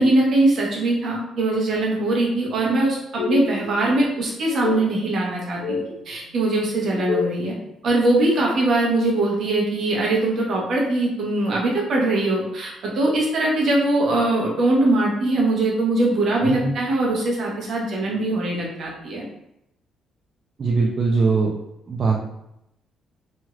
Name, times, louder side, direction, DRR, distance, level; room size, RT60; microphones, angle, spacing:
voice 1, 0.0-7.5 7.8-19.3, right 2 dB, 65° right, -3 dB, 1.0 m, -21 dB
sound 1, 3.2-4.0 4.5-4.8 5.3-5.9 6.7-7.4, left 5 dB, 85° left, 0.4 m, -27 dB
voice 2, 16.4-16.7 20.6-21.5 21.9-22.3, right 4 dB, 45° right, -2 dB, 0.4 m, -21 dB
3.0 x 2.7 x 2.4 m, 0.82 s
cardioid pair, 90°, 0 cm